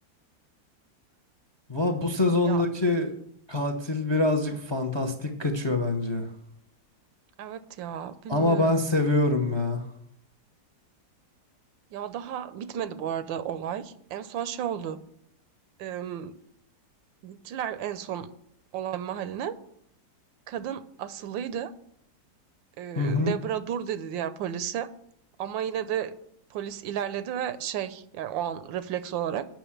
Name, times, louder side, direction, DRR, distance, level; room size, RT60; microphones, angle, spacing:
voice 1, 1.7-3.1 3.5-6.3 8.3-9.8 23.0-23.3, left 2 dB, 30° left, 5 dB, 0.5 m, -25 dB
voice 2, 7.4-8.8 11.9-15.0 15.8-16.4 17.2-18.3 18.7-19.5 20.5-21.7 22.8-24.9 25.4-26.1 26.5-29.5, right 9 dB, 85° right, 13 dB, 1.4 m, -33 dB
9.0 x 6.0 x 7.2 m, 0.72 s
omnidirectional pair, 2.0 m